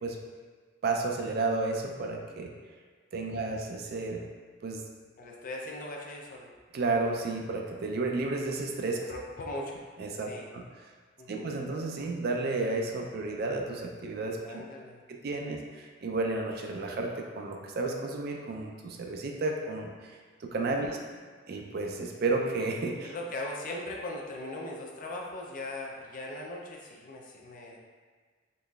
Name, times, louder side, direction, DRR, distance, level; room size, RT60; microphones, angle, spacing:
voice 1, 0.8-2.5 3.1-4.3 4.6-4.8 6.7-9.0 10.0-10.6 11.3-14.6 15.1-20.9 21.5-23.1, right 3 dB, 50° right, 2 dB, 0.4 m, -32 dB
voice 2, 5.2-6.5 9.1-9.8 10.3-10.5 11.2-11.5 14.4-15.1 20.7-21.2 23.0-27.8, left 1 dB, 45° left, -1 dB, 0.4 m, -39 dB
3.9 x 3.1 x 2.3 m, 1.6 s
head